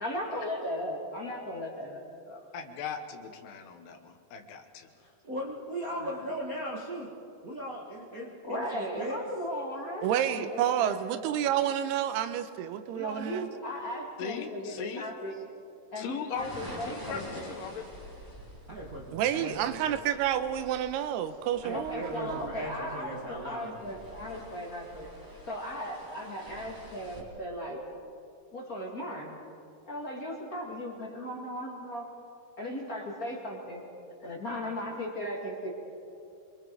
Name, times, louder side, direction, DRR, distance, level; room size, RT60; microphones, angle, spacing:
voice 1, 0.0-2.4 5.9-6.3 8.4-11.3 12.9-15.4 15.9-17.6 21.7-25.1 25.5-27.8 28.5-29.4 29.9-32.0 32.6-33.8 34.2-35.7, equal, 30° left, 1.8 m, -37 dB
voice 2, 2.5-4.9 14.2-15.1 16.0-17.9 19.3-19.8, left 6 dB, 80° left, 3.2 m, -39 dB
voice 3, 5.0-7.1 7.4-9.2 18.7-19.8 21.6-23.9 25.2-25.4, equal, 55° right, 1.0 m, -38 dB
voice 4, 10.0-13.5 19.1-22.5, right 10 dB, 85° right, 2.8 m, -29 dB
sound 1, 16.3-27.2, equal, 5° right, 2.7 m, -47 dB
27.0 x 22.0 x 4.7 m
omnidirectional pair, 4.7 m